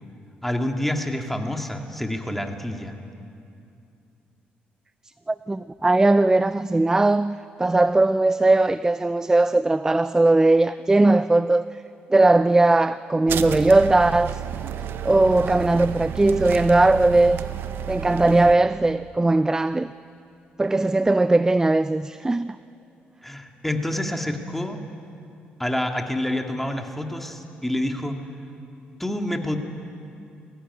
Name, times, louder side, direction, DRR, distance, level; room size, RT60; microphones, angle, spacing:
voice 1, 0.4-2.9 23.2-24.8 25.6-28.2 29.0-29.6, left 1 dB, 5° left, 2.3 m, -27 dB
voice 2, 5.3-11.8 12.1-14.4 15.0-17.4 17.9-19.9 20.6-22.6, right 2 dB, 15° right, 0.4 m, -19 dB
sound 1, 13.3-18.6, right 9 dB, 70° right, 0.9 m, -31 dB
21.0 x 16.0 x 9.8 m
cardioid pair, 75°, 4 cm